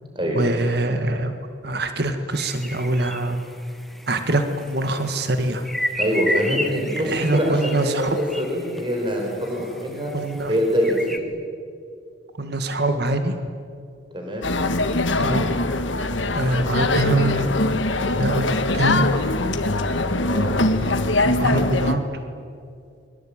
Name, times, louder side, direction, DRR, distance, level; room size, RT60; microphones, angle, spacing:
voice 1, 0.4-1.3 1.6-3.4 4.1-5.6 7.1-8.2 10.1-10.5 12.4-13.4 15.2-15.5 16.3-17.5 18.2-19.1 21.2-22.0, right 1 dB, 55° right, 7 dB, 2.0 m, -24 dB
sound 1, 2.3-11.2, equal, ahead, 1.6 m, -33 dB
voice 2, 6.0-10.1 10.5-11.2 14.1-14.5 20.3-20.6, equal, 25° right, 0 dB, 5.0 m, -24 dB
sound 2, 14.4-21.9, left 2 dB, 75° left, 1.8 m, -22 dB
28.0 x 23.5 x 8.9 m, 2.3 s
head